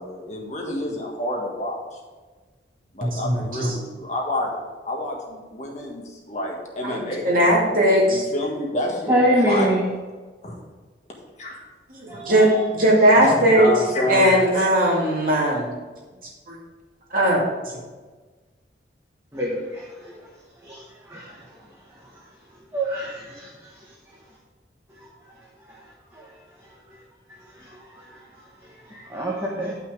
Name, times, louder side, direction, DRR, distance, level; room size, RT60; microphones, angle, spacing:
voice 1, 0.0-2.0 2.9-4.5 4.8-7.3 8.1-9.8 10.4-10.6 11.4-11.6 12.3-12.4 13.2-14.7, left 1 dB, 40° left, -1 dB, 1.6 m, -28 dB
voice 2, 3.0-3.7 6.8-8.2 12.0-13.7 14.1-15.7 16.5-16.6 17.1-17.4, right 1 dB, 50° right, -3 dB, 2.3 m, -18 dB
voice 3, 9.1-9.8 12.1-12.6 19.3-19.6 20.7-20.8 21.1-21.2 22.7-23.2 29.1-29.7, equal, 15° right, -5 dB, 1.3 m, -22 dB
10.0 x 5.8 x 4.9 m, 1.3 s
head